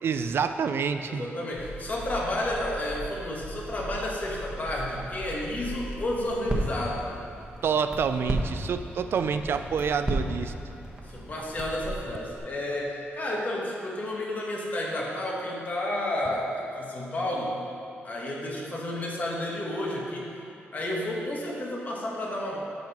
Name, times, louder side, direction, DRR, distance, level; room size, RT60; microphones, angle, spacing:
voice 1, 0.0-1.3 7.6-10.5, right 6 dB, 65° right, 9 dB, 0.4 m, -27 dB
voice 2, 1.1-7.0 11.0-17.5 18.0-20.4 20.7-22.6, left 1 dB, 40° left, -3 dB, 1.4 m, -31 dB
Crackle, 1.5-12.4, right 1 dB, 15° right, 1.2 m, -35 dB
13.0 x 5.3 x 3.1 m, 2.6 s
cardioid pair, 105°, 4 cm